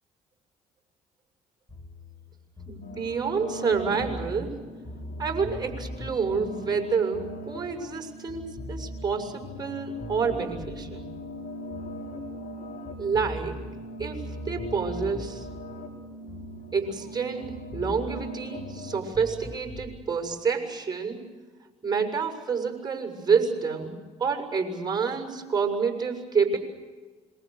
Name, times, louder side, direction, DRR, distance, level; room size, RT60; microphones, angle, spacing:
sound 1, 1.7-8.0 8.3-12.6 12.8-17.1 17.4-20.0, left 1 dB, 10° left, 6.5 m, -41 dB
voice 1, 2.7-4.6 5.2-11.1 13.0-13.7 14.0-15.5 16.7-21.2 21.8-26.6, right 5 dB, 25° right, 5 dB, 6.9 m, -28 dB
sound 2, 2.8-19.0, equal, 55° left, 6.1 m, -41 dB
27.0 x 24.0 x 6.7 m, 1.4 s
supercardioid pair, 65°, 16 cm